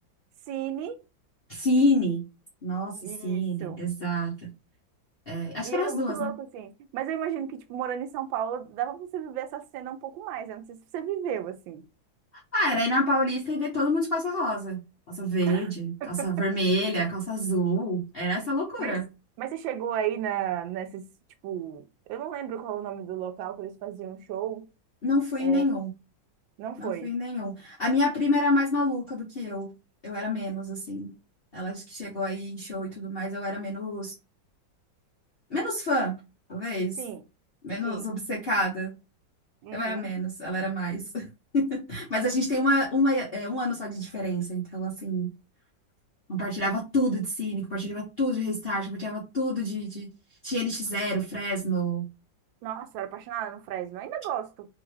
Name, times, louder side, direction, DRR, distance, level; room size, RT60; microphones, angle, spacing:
voice 1, 0.5-1.0 3.0-3.8 5.6-11.8 15.5-15.7 16.0-16.3 18.8-19.0 19.4-21.1 21.4-24.7 25.4-25.6 26.6-27.1 37.0-37.2 37.8-38.1 39.6-40.1 52.6-54.7, right 10 dB, 85° right, 1.3 m, -34 dB
voice 2, 1.5-2.3 2.6-4.5 5.3-6.3 12.5-14.8 15.1-19.0 25.0-25.9 26.8-29.7 30.0-31.1 31.5-34.1 35.5-36.2 36.5-37.0 37.6-38.9 39.7-41.3 41.5-45.3 46.3-50.1 50.4-52.1, equal, 50° left, 0.7 m, -28 dB
3.3 x 2.4 x 3.1 m
omnidirectional pair, 2.1 m